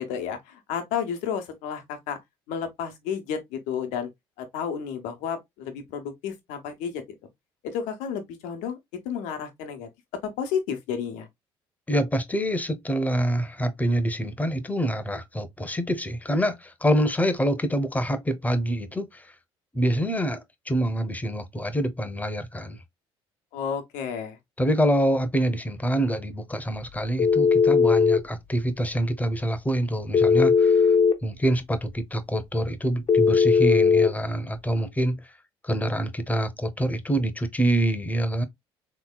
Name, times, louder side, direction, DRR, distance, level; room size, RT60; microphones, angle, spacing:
voice 1, 0.0-2.2 2.5-4.1 4.4-7.0 7.6-8.8 9.0-9.9 10.4-11.3 23.5-24.4, left 7 dB, 75° left, 0.9 m, -31 dB
voice 2, 11.9-19.3 19.7-20.4 20.7-22.8 24.6-30.9 31.2-35.2 35.6-38.4, right 1 dB, 10° left, 0.8 m, -26 dB
Telephone, 27.2-28.2 30.1-31.2 33.1-34.1, left 5 dB, 45° left, 0.7 m, -18 dB
3.5 x 3.0 x 2.2 m
hypercardioid pair, 60°, 13 cm